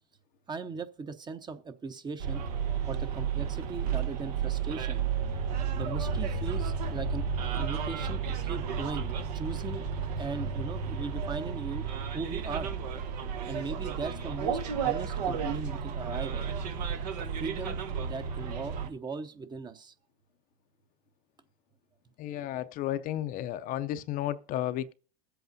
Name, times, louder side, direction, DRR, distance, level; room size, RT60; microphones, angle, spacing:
voice 1, 0.5-2.4 2.9-5.0 5.7-7.2 7.5-9.8 10.2-11.8 12.1-12.7 13.5-16.4 17.4-19.9, right 4 dB, 20° right, 0.7 m, -38 dB
Bus, 2.2-18.9, right 6 dB, 80° right, 1.1 m, -32 dB
voice 2, 22.2-24.9, left 12 dB, 45° left, 0.5 m, -33 dB
20.5 x 7.9 x 2.6 m
supercardioid pair, 110°, 20 cm